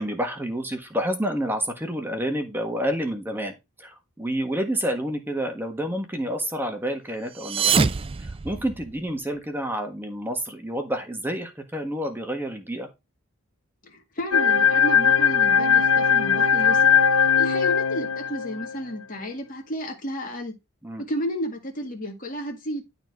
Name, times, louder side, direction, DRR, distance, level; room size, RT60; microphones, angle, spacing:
voice 1, 0.0-7.9 8.2-12.9 20.8-21.0, equal, 10° right, 1.5 m, -29 dB
sound 1, 7.3-9.2, right 5 dB, 25° right, 0.3 m, -25 dB
voice 2, 13.8-16.9 17.4-20.5 21.0-22.8, equal, 40° left, 1.9 m, -32 dB
sound 2, 14.3-18.8, left 7 dB, 75° left, 0.8 m, -19 dB
11.5 x 4.1 x 4.7 m
head